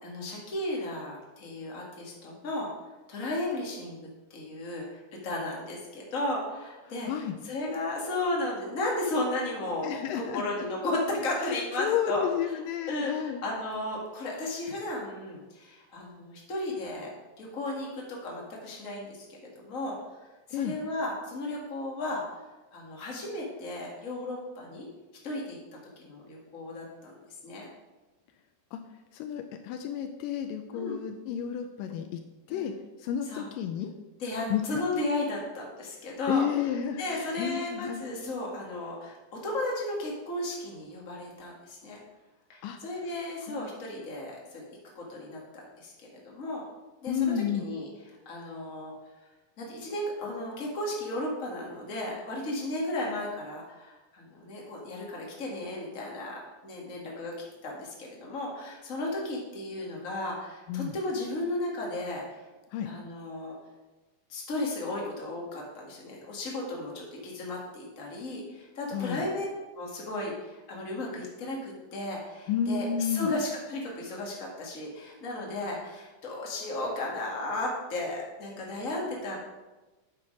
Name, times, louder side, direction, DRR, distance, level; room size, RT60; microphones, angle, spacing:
voice 1, 0.0-2.7 3.1-4.0 4.3-7.1 7.4-12.6 12.9-17.1 17.4-19.2 19.5-20.0 20.5-22.4 22.7-24.9 25.2-25.6 26.0-27.1 27.4-27.7 30.7-31.0 32.5-32.7 33.3-33.5 34.2-36.5 37.0-42.0 42.5-44.6 44.9-45.4 45.8-45.9 46.3-46.6 47.0-47.9 48.2-48.9 49.6-57.4 57.6-62.2 62.8-63.5 64.3-69.4 69.8-79.4, left 2 dB, 40° left, -2 dB, 1.1 m, -34 dB
voice 2, 9.8-10.4 11.4-13.4 20.5-20.8 28.7-28.8 29.1-32.2 32.5-32.7 33.0-33.9 34.5-34.8 36.3-38.0 42.6-42.8 43.5-43.7 47.1-47.7 60.7-60.9 62.7-62.9 68.9-69.3 72.5-73.3, left 8 dB, 85° left, 6 dB, 2.0 m, -31 dB
8.5 x 6.2 x 5.1 m, 1.1 s
omnidirectional pair, 4.4 m